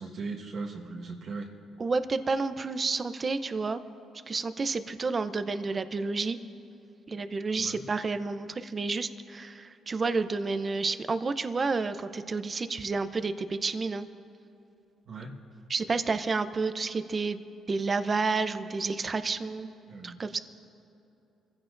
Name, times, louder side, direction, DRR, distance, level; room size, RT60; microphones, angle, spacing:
voice 1, 0.0-1.5 7.6-7.8 15.1-15.3 19.9-20.2, right 3 dB, 65° right, -4 dB, 1.4 m, -38 dB
voice 2, 1.8-3.8 4.3-6.4 7.1-14.1 15.7-19.7 20.0-20.4, right 4 dB, 35° right, 10 dB, 0.7 m, -30 dB
25.0 x 15.5 x 2.6 m, 2.8 s
cardioid pair, 90°, 0 cm